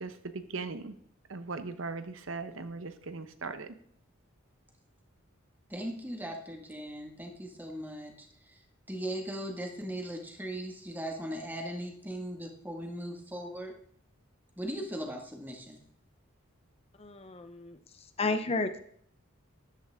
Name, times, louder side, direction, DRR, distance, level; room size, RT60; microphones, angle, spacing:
voice 1, 0.0-1.0 1.3-3.7, right 3 dB, 70° right, 10 dB, 0.9 m, -39 dB
voice 2, 5.7-8.3 8.9-13.7 14.6-15.8, right 1 dB, 10° right, 3 dB, 1.8 m, -38 dB
voice 3, 17.0-17.8 18.2-18.8, left 3 dB, 30° left, 9 dB, 0.7 m, -32 dB
13.5 x 11.5 x 3.6 m, 0.63 s
head